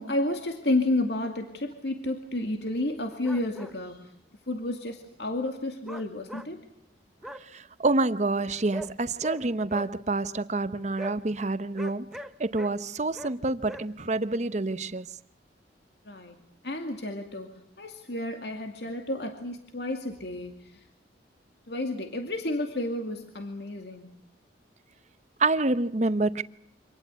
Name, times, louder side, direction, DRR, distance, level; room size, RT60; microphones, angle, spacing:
voice 1, 0.0-4.1 4.5-6.7 16.1-16.4 16.6-17.5 17.8-20.8 21.7-24.1, left 1 dB, 65° left, 2.3 m, -31 dB
sound 1, 3.1-3.7 5.8-6.5 7.2-7.4 8.7-8.9 9.2-9.4 9.7-9.9 11.0-11.1 11.8-12.7 13.1-13.3 13.7-13.9, equal, ahead, 1.0 m, -39 dB
voice 2, 7.4-15.2 25.4-26.4, right 2 dB, 40° right, 0.9 m, -28 dB
26.0 x 19.0 x 8.3 m
head